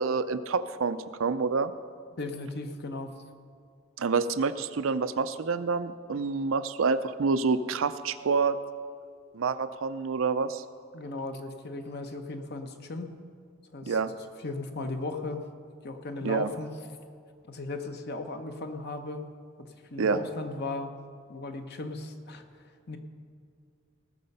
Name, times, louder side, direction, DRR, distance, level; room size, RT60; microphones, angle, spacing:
voice 1, 0.0-1.7 4.0-8.6 9.3-10.6 13.9-14.1 16.2-16.5 20.0-20.2, right 4 dB, 80° right, 12 dB, 0.5 m, -27 dB
voice 2, 2.2-3.1 10.9-13.1 13.7-14.0 14.4-15.4 15.8-16.7 17.5-19.3 19.9-20.9 21.3-22.4 22.9-23.0, left 2 dB, 55° left, 6 dB, 1.0 m, -36 dB
18.0 x 6.7 x 5.5 m, 2.2 s
head